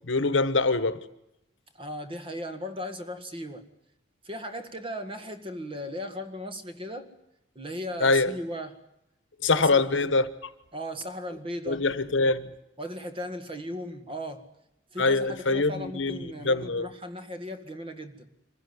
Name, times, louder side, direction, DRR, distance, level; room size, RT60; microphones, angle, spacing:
voice 1, 0.1-1.0 8.0-8.3 9.4-10.2 11.7-12.5 15.0-16.2 16.4-16.9, left 3 dB, 70° left, 1.2 m, -24 dB
voice 2, 1.7-3.6 4.2-7.1 7.6-8.8 9.5-9.8 10.7-11.9 12.8-14.5 14.9-18.3, equal, 25° right, 1.8 m, -37 dB
25.0 x 15.5 x 9.6 m
head